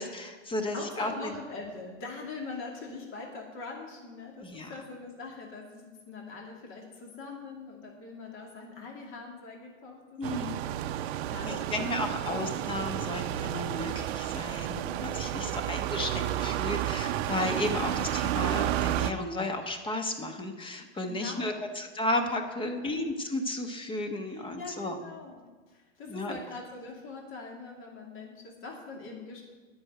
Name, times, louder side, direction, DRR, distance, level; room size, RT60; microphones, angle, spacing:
voice 1, 0.0-1.1 4.4-4.7 10.2-10.6 11.4-25.0 26.1-26.4, left 1 dB, 15° left, 6 dB, 1.2 m, -33 dB
voice 2, 0.6-11.9 12.2-12.6 14.5-15.1 15.3-15.7 21.0-21.7 22.6-23.1 24.2-29.4, left 3 dB, 35° left, 0 dB, 2.6 m, -43 dB
sound 1, 10.2-19.1, right 12 dB, 55° right, 0.7 m, -31 dB
9.8 x 6.5 x 8.8 m, 1.4 s
hypercardioid pair, 120°, 38 cm